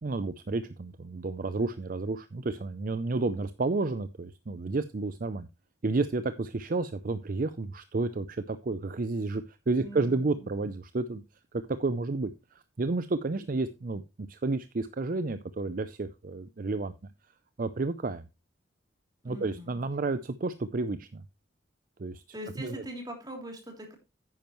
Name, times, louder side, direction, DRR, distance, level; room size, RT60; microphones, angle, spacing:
voice 1, 0.0-5.5 5.8-11.2 11.8-12.3 12.8-16.9 17.6-18.2 19.2-21.2 22.0-22.2 22.6-22.8, right 3 dB, 45° right, 12 dB, 0.5 m, -31 dB
voice 2, 9.8-10.6 19.2-19.8 22.3-23.9, right 1 dB, 20° right, 2 dB, 3.1 m, -42 dB
10.5 x 9.1 x 3.1 m, 0.24 s
head